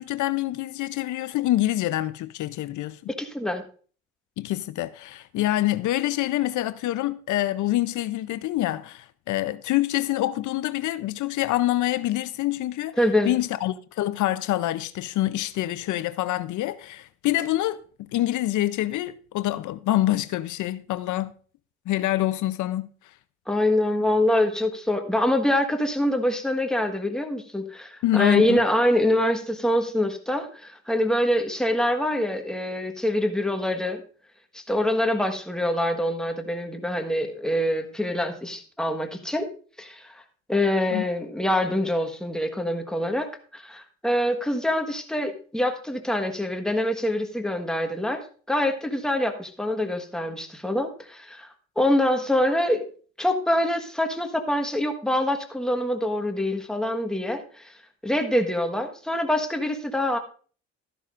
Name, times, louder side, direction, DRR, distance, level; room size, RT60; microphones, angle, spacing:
voice 1, 0.0-3.1 4.4-13.0 13.2-17.8 18.1-21.3 21.9-22.9 28.0-28.6 40.9-41.0, left 15 dB, 75° left, 0.6 m, -26 dB
voice 2, 3.1-3.6 13.0-13.3 23.5-34.0 34.5-39.5 39.8-40.2 40.5-52.9 53.2-57.7 58.0-60.2, left 1 dB, ahead, 1.3 m, -25 dB
13.0 x 11.0 x 2.5 m
cardioid pair, 90°, 30 cm